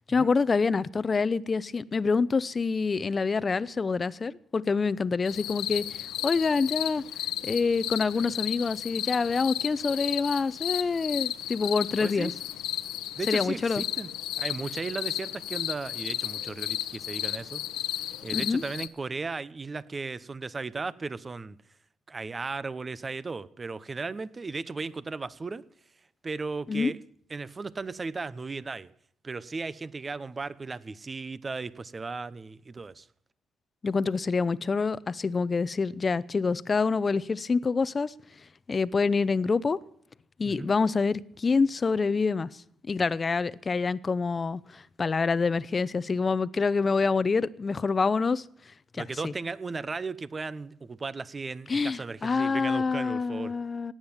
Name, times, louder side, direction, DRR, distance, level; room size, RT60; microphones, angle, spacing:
voice 1, 0.1-7.0 7.4-12.3 13.3-13.8 18.3-18.6 26.7-26.9 33.8-38.1 38.7-39.8 40.4-42.5 42.9-48.4 48.9-49.3 51.7-53.9, left 4 dB, 35° left, 0.7 m, -26 dB
sound 1, 5.3-18.9, left 12 dB, 90° left, 1.0 m, -34 dB
voice 2, 12.0-12.3 13.2-14.1 14.4-17.6 18.2-21.6 22.1-25.6 26.2-27.0 27.3-28.9 29.2-33.1 40.4-40.7 49.0-53.5, right 4 dB, 30° right, 0.8 m, -36 dB
17.5 x 9.8 x 7.3 m
cardioid pair, 90°, 0 cm